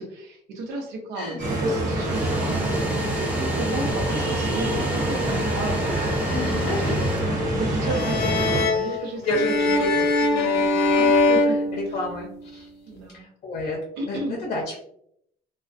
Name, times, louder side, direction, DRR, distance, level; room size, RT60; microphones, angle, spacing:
voice 1, 0.1-3.1 3.6-6.1 6.4-6.9 7.5-9.9 10.2-11.6 12.9-13.2 14.0-14.3, right 2 dB, 85° right, 2 dB, 0.7 m, -33 dB
sound 1, 1.4-8.6, right 1 dB, 55° right, 1.0 m, -25 dB
Domestic sounds home sounds, 1.9-7.8, equal, 10° right, 0.5 m, -36 dB
voice 2, 6.3-7.0 8.7-10.2 10.4-10.6 11.7-12.7 13.1-14.8, left 2 dB, 45° left, -1 dB, 0.6 m, -31 dB
sound 2, 7.8-12.4, left 3 dB, 90° left, 0.5 m, -22 dB
2.3 x 2.2 x 2.4 m, 0.72 s
cardioid pair, 110°, 17 cm